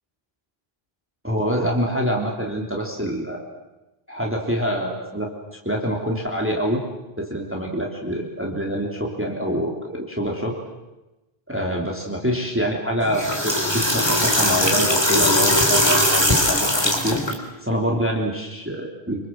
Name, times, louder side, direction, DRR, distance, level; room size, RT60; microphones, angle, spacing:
voice 1, 1.2-3.4 4.1-5.3 5.6-6.8 7.2-10.5 11.5-17.2 17.6-19.3, equal, 10° right, -1 dB, 3.4 m, -25 dB
sound 1, 13.0-17.3, left 1 dB, 25° left, 3.9 m, -20 dB
26.0 x 25.5 x 7.7 m, 1.0 s
omnidirectional pair, 1.0 m